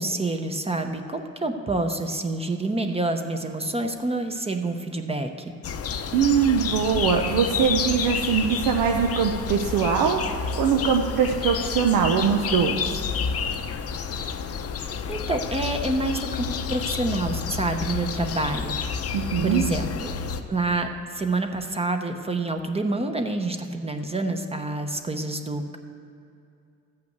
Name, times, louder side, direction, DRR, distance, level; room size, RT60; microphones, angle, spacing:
voice 1, 0.0-5.3 14.8-20.2 20.5-20.9 21.1-25.8, right 2 dB, 20° right, 5 dB, 0.8 m, -28 dB
sound 1, 5.6-20.4, left 6 dB, 50° left, 0.7 m, -30 dB
voice 2, 6.1-12.8 19.1-19.6, right 7 dB, 85° right, 2 dB, 0.8 m, -22 dB
13.5 x 5.8 x 7.9 m, 2.5 s
cardioid pair, 90°, 30 cm